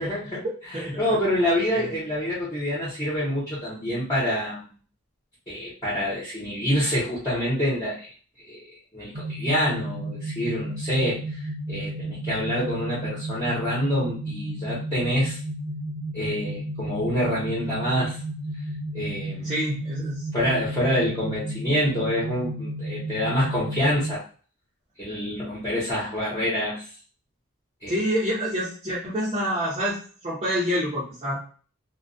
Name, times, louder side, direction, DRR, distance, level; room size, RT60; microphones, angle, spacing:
voice 1, 0.0-4.7 5.5-8.1 8.4-8.7 8.9-15.4 16.1-18.2 18.9-19.5 20.3-24.2 25.0-26.9 27.8-28.0, equal, 20° left, -9 dB, 0.8 m, -26 dB
sound 1, 9.1-24.2, right 1 dB, 85° right, 0.7 m, -33 dB
voice 2, 19.4-20.3 27.9-31.5, equal, 25° right, -9 dB, 0.7 m, -27 dB
2.2 x 2.2 x 2.5 m, 0.40 s
head